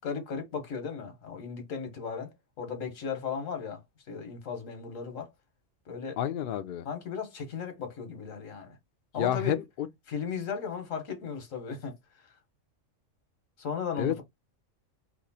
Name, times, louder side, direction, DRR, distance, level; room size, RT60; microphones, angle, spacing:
voice 1, 0.0-5.3 5.9-6.2 6.8-8.8 9.1-9.6 10.1-12.0 13.6-14.2, left 6 dB, 85° left, 1.4 m, -36 dB
voice 2, 6.2-6.9 9.2-9.6 14.0-14.2, left 10 dB, 60° left, 0.6 m, -29 dB
3.0 x 2.5 x 4.0 m
omnidirectional pair, 1.3 m